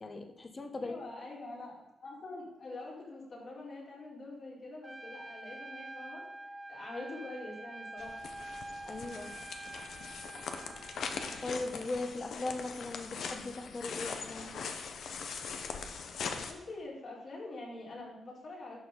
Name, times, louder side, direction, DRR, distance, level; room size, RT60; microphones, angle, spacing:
voice 1, 0.0-1.0 8.9-9.3 11.4-14.5, left 2 dB, 35° left, 7 dB, 1.3 m, -39 dB
voice 2, 0.8-6.3 6.7-8.2 16.5-18.9, left 2 dB, 60° left, -3 dB, 4.1 m, -45 dB
Trumpet, 4.8-11.5, right 2 dB, 20° right, 0.5 m, -46 dB
sound 1, 8.0-16.5, left 5 dB, 75° left, 1.0 m, -41 dB
11.0 x 6.3 x 5.4 m, 1.0 s
cardioid pair, 75°, 0 cm